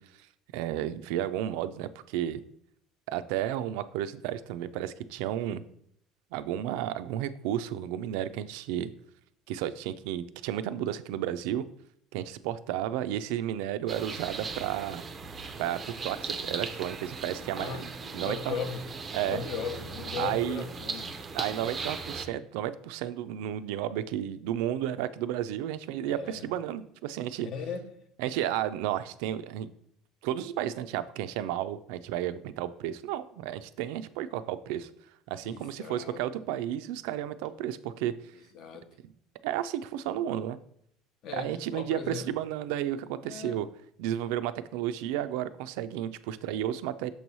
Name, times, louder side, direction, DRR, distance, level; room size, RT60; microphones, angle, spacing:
voice 1, 0.5-2.4 3.1-5.6 6.3-8.9 9.5-11.6 12.1-15.0 15.6-17.8 18.1-18.6 19.1-19.4 20.2-20.7 21.3-27.5 28.2-29.7 30.2-34.9 35.3-38.1 39.0-39.1 39.4-40.6 41.3-43.7 44.0-47.1, right 11 dB, 80° right, 0.4 m, -32 dB
sound 1, 13.9-22.3, right 4 dB, 20° right, 0.5 m, -38 dB
voice 2, 18.2-18.8 19.3-21.1 26.0-26.5 27.4-27.8 35.4-36.2 38.3-38.9 41.2-42.3 43.2-43.6, left 6 dB, 45° left, 0.7 m, -37 dB
6.7 x 3.1 x 5.4 m
cardioid pair, 175°, 0 cm